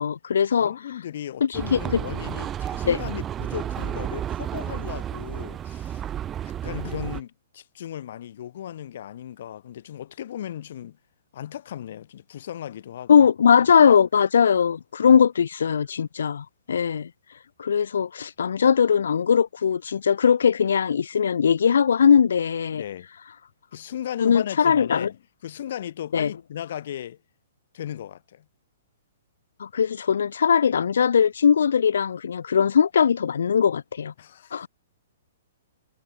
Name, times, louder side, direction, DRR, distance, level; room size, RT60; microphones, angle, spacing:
voice 1, 0.0-0.7 1.4-1.8 2.9-3.0 13.1-17.1 17.6-22.8 24.2-25.1 26.1-26.3 29.6-34.1 34.5-34.7, left 7 dB, 85° left, 0.4 m, -20 dB
voice 2, 0.6-6.0 6.4-11.0 11.3-13.1 22.7-23.1 23.7-27.2 27.7-28.5 34.2-34.7, left 10 dB, 55° left, 1.8 m, -36 dB
sound 1, 1.5-7.2, right 10 dB, 15° right, 0.5 m, -32 dB
hypercardioid pair, 160°, 0 cm